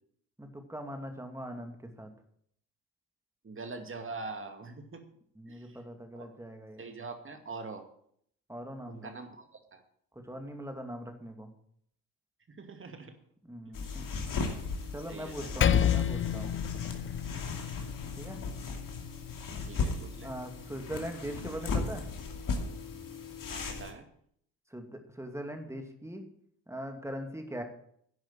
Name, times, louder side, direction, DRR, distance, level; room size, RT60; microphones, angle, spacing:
voice 1, 0.4-2.1 5.4-6.9 8.5-9.1 10.2-11.5 13.4-14.0 14.9-16.6 18.2-18.4 20.2-22.1 24.7-26.3 26.7-27.6, equal, 5° right, 5 dB, 2.5 m, -41 dB
voice 2, 3.4-5.0 5.5-5.8 6.2-6.3 6.8-7.8 8.9-9.8 12.5-13.1 13.8-13.9 15.1-15.6 19.7-20.3 23.5-24.1, right 3 dB, 25° right, 6 dB, 2.3 m, -44 dB
sound 1, 13.7-23.9, left 4 dB, 45° left, 2.6 m, -37 dB
Percussion, 15.6-20.4, left 9 dB, 25° left, 0.6 m, -31 dB
10.5 x 9.3 x 7.5 m, 0.65 s
figure-of-eight pair, 50°, 47 cm